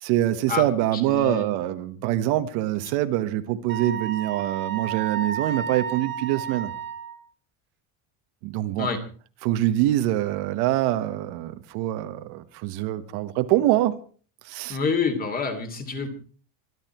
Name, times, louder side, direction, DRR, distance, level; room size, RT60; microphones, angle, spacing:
voice 1, 0.0-6.7 8.4-8.9 9.4-14.0 14.5-14.8, right 13 dB, 65° right, 1.6 m, -24 dB
voice 2, 0.9-1.5 8.8-9.0 14.7-16.1, left 5 dB, 20° left, 2.8 m, -27 dB
Wind instrument woodwind instrument, 3.7-7.2, right 8 dB, 25° right, 1.6 m, -32 dB
25.0 x 11.5 x 4.5 m
cardioid pair, 175°, 42 cm